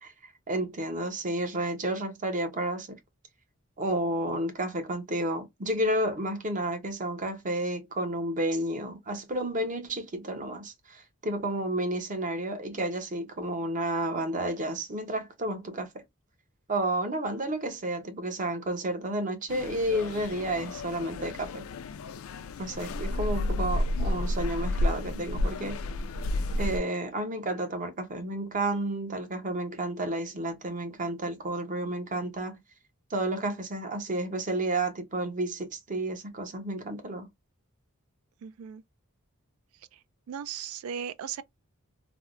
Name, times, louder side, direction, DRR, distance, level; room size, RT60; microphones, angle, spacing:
voice 1, 0.0-3.0 3.8-16.0 16.7-21.7 22.6-25.8 26.6-32.6 33.1-37.3, right 1 dB, 35° right, 0.7 m, -31 dB
sound 1, 19.5-26.8, left 1 dB, 75° left, 0.4 m, -31 dB
voice 2, 38.4-38.8 40.3-41.4, right 8 dB, 80° right, 0.3 m, -37 dB
3.4 x 2.0 x 2.4 m
head